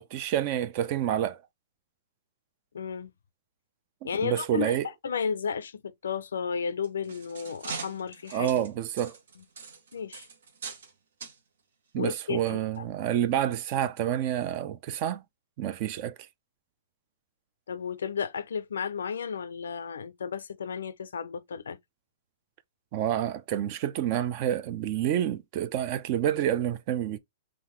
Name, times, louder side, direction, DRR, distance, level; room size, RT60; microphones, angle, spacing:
voice 1, 0.0-1.4 4.2-4.9 8.3-9.2 11.9-15.2 15.6-16.1 22.9-27.2, right 11 dB, 45° right, 0.4 m, -28 dB
voice 2, 2.7-3.1 4.0-4.8 5.0-8.5 9.9-10.3 12.0-12.9 17.7-21.8, left 6 dB, 85° left, 0.4 m, -33 dB
sound 1, 6.7-10.9 11.2-11.4 12.1-12.3 12.8-12.9, right 5 dB, 75° right, 0.9 m, -42 dB
3.7 x 2.5 x 2.9 m
hypercardioid pair, 130°, 0 cm